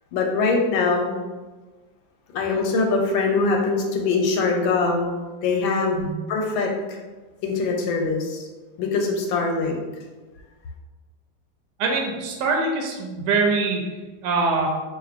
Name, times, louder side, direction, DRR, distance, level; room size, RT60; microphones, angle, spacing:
voice 1, 0.1-1.1 2.3-5.1 5.4-6.0 6.3-7.0 7.4-8.4 8.8-9.8, left 4 dB, 85° left, 1 dB, 1.4 m, -22 dB
voice 2, 11.8-13.8 14.2-14.7, right 4 dB, 75° right, 1 dB, 1.1 m, -23 dB
3.7 x 3.1 x 2.5 m, 1.3 s
omnidirectional pair, 2.1 m